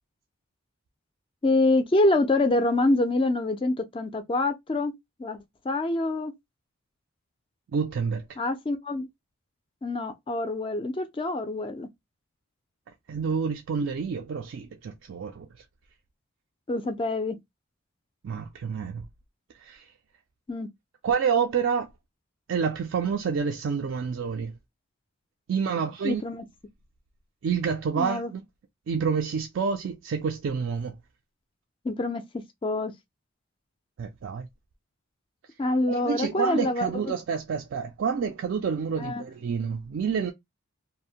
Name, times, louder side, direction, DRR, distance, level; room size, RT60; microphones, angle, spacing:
voice 1, 1.4-5.4 5.6-6.3 8.4-9.1 9.8-11.9 16.7-17.4 20.5-20.7 26.0-26.4 28.0-28.3 31.8-32.9 35.6-37.1 39.0-39.2, left 2 dB, 25° left, 0.3 m, -26 dB
voice 2, 7.7-8.4 13.1-15.5 18.2-19.0 19.6-19.9 21.0-21.9 22.5-24.5 25.5-26.2 27.4-28.4 28.9-31.0 34.0-34.5 35.9-40.3, right 6 dB, 60° right, 0.3 m, -28 dB
2.6 x 2.0 x 2.7 m
head